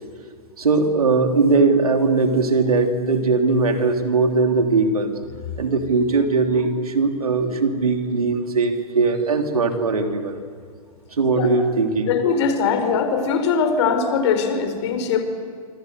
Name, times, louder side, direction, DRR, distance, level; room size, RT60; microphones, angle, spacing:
voice 1, 0.6-5.1 5.6-10.4 11.2-12.2, right 3 dB, 80° right, 5 dB, 3.2 m, -20 dB
voice 2, 12.1-15.2, left 6 dB, 50° left, 8 dB, 4.6 m, -21 dB
27.5 x 25.0 x 8.1 m, 2.1 s
figure-of-eight pair, 115°, 19 cm